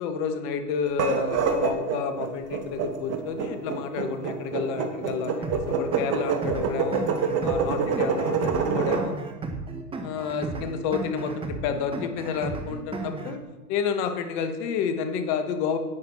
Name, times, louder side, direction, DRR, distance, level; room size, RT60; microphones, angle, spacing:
voice 1, 0.0-7.0 7.4-9.1 10.0-13.4 13.7-15.8, left 6 dB, 45° left, 7 dB, 1.5 m, -30 dB
sound 1, 0.9-9.1, right 5 dB, 30° right, 1.5 m, -26 dB
sound 2, 5.4-13.4, right 3 dB, 10° right, 0.9 m, -35 dB
10.5 x 9.1 x 4.2 m, 1.1 s
hypercardioid pair, 110°, 48 cm